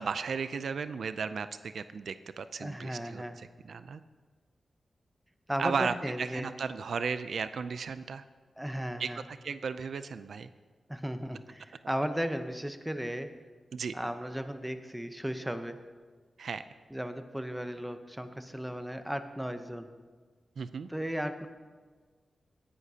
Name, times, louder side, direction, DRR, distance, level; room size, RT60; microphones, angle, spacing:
voice 1, 0.0-4.0 5.6-8.2 9.0-10.5 13.7-13.9 16.4-16.6 20.6-20.9, right 5 dB, 75° right, 12 dB, 0.4 m, -35 dB
voice 2, 2.6-3.4 5.5-6.5 8.6-9.2 10.9-13.3 13.9-15.8 16.9-19.9 20.9-21.5, equal, 5° right, 8 dB, 0.8 m, -35 dB
18.0 x 11.0 x 2.8 m, 1.5 s
wide cardioid pair, 95°, 0 cm